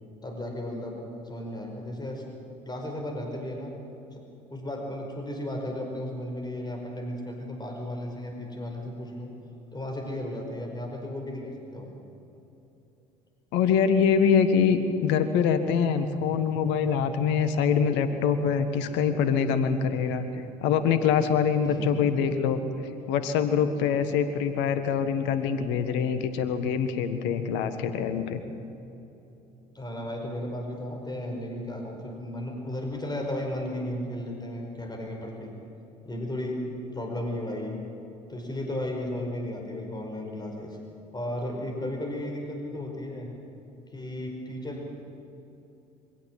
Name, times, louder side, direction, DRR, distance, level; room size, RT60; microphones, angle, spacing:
voice 1, 0.2-2.2 2.7-3.7 4.1-4.2 4.5-9.3 9.7-12.0 19.9-20.3 21.6-22.2 29.7-35.6 36.0-37.8 38.3-40.8 41.1-43.3 43.9-45.2, left 1 dB, 20° left, 1 dB, 5.2 m, -34 dB
voice 2, 13.5-22.6 23.1-28.4, left 7 dB, 60° left, 10 dB, 1.6 m, -24 dB
24.0 x 16.5 x 7.7 m, 2.9 s
figure-of-eight pair, 60°, 21 cm